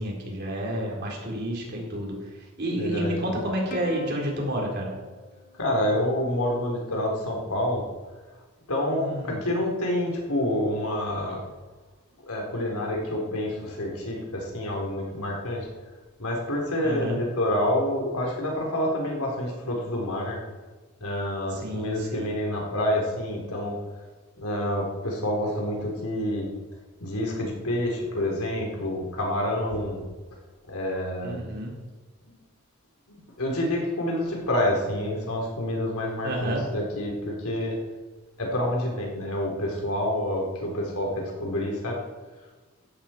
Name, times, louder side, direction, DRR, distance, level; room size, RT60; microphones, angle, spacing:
voice 1, 0.0-4.9 9.0-9.4 16.8-17.2 21.5-22.3 29.4-29.5 31.2-31.7 36.2-36.6, right 1 dB, 50° right, -2 dB, 4.4 m, -30 dB
voice 2, 2.8-3.2 5.6-7.9 8.7-11.5 12.2-15.7 16.2-20.4 21.0-23.8 24.4-26.5 27.0-30.0 30.7-31.4 33.1-37.8 38.4-42.0, left 1 dB, 85° left, -1 dB, 4.3 m, -28 dB
Plucked string instrument, 3.7-6.4, equal, 35° left, 0.9 m, -44 dB
16.0 x 13.0 x 4.7 m, 1.3 s
head